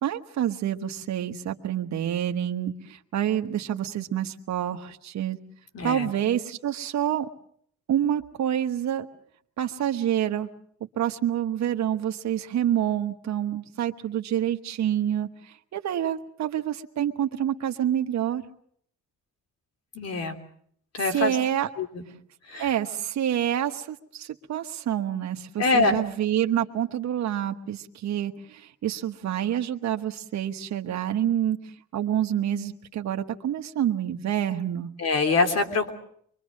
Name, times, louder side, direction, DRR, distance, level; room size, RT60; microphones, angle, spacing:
voice 1, 0.0-5.4 5.8-7.3 7.9-9.1 9.6-10.5 11.0-18.4 21.0-21.7 22.6-31.6 31.9-34.9, right 10 dB, 65° right, 5 dB, 1.3 m, -27 dB
voice 2, 5.7-6.1 19.9-20.4 20.9-21.4 21.8-22.0 22.5-22.7 25.6-26.0 35.0-36.0, left 3 dB, 55° left, 6 dB, 3.3 m, -24 dB
25.0 x 23.0 x 6.5 m, 0.65 s
cardioid pair, 90°, 30 cm